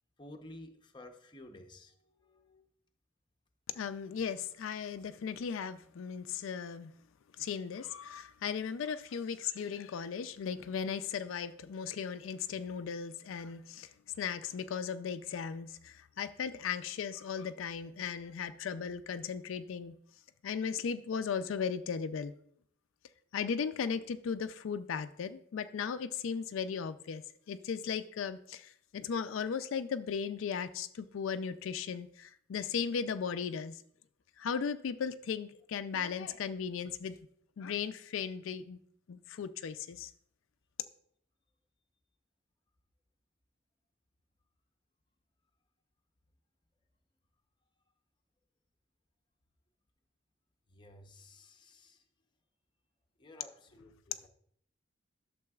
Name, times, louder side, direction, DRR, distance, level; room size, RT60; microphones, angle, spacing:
voice 1, 0.2-2.6 50.7-52.0 53.2-54.3, left 1 dB, 25° left, 4 dB, 0.7 m, -53 dB
voice 2, 3.7-6.9 7.4-13.9 14.2-19.9 20.4-22.3 23.3-27.2 27.5-33.8 34.4-37.2 37.6-38.8 39.1-40.1, left 6 dB, 80° left, 10 dB, 0.4 m, -37 dB
11.5 x 6.7 x 2.3 m, 0.66 s
head